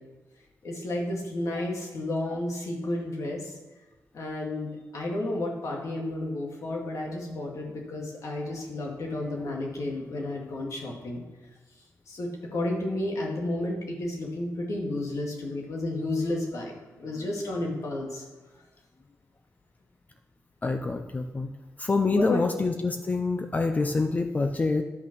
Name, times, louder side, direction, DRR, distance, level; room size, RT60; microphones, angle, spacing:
voice 1, 0.6-3.5 4.1-11.2 12.1-18.2 22.1-22.4, left 1 dB, 65° left, 0 dB, 2.2 m, -32 dB
voice 2, 20.6-21.5 21.8-24.8, left 3 dB, 25° left, 6 dB, 0.5 m, -26 dB
10.5 x 5.9 x 6.1 m, 1.2 s
wide cardioid pair, 150°, 6 cm